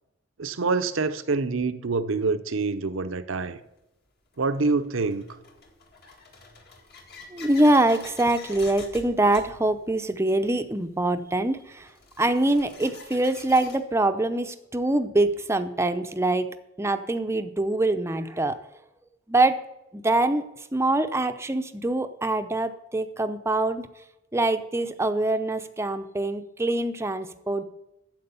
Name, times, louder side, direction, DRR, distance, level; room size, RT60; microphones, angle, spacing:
voice 1, 0.4-3.6 4.4-5.2, right 4 dB, 70° right, 0.7 m, -26 dB
sound 1, 3.4-3.5 4.3-13.8, left 3 dB, 50° left, 1.9 m, -47 dB
voice 2, 7.3-11.9 12.2-18.6 19.3-19.6 19.9-20.4 20.7-23.9 24.3-27.6, right 2 dB, 15° right, 0.6 m, -24 dB
9.6 x 7.5 x 6.9 m
head